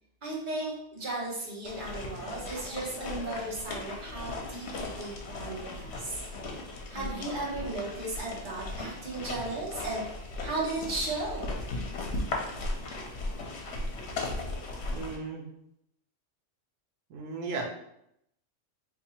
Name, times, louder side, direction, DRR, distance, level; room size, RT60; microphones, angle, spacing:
voice 1, 0.2-6.2 6.9-10.0 10.4-11.6, right 2 dB, 40° right, -4 dB, 1.2 m, -35 dB
sound 1, 1.6-15.2, left 2 dB, 65° left, 0.9 m, -37 dB
voice 2, 14.9-15.5 17.1-17.6, right 4 dB, 90° right, 0 dB, 1.1 m, -35 dB
2.7 x 2.7 x 4.2 m, 0.77 s
omnidirectional pair, 1.3 m